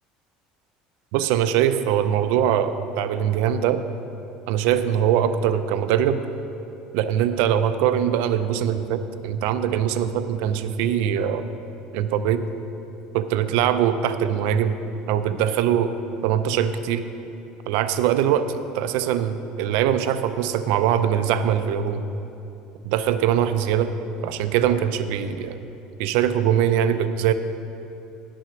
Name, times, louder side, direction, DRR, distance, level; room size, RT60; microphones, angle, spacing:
voice 1, 1.1-3.8 4.5-6.2 6.9-11.4 11.9-12.4 13.1-14.8 15.1-15.9 16.2-17.1 17.7-22.0 22.8-23.9 24.2-25.6 26.0-27.3, right 9 dB, 75° right, 11 dB, 0.5 m, -22 dB
10.0 x 6.2 x 5.7 m, 2.9 s
cardioid pair, 125°, 3 cm